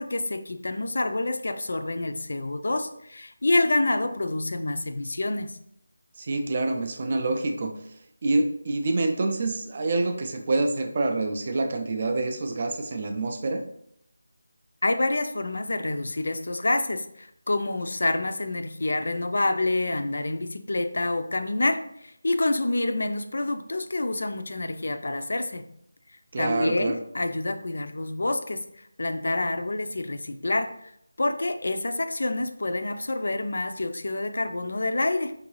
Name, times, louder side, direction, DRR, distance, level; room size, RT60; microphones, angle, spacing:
voice 1, 0.0-5.6 14.8-25.6 26.4-30.9 31.2-35.3, left 2 dB, 55° left, 8 dB, 0.4 m, -27 dB
voice 2, 6.2-13.6 26.3-27.0, right 2 dB, 25° right, 5 dB, 0.3 m, -27 dB
4.6 x 2.5 x 3.1 m, 0.71 s
figure-of-eight pair, 175°, 0 cm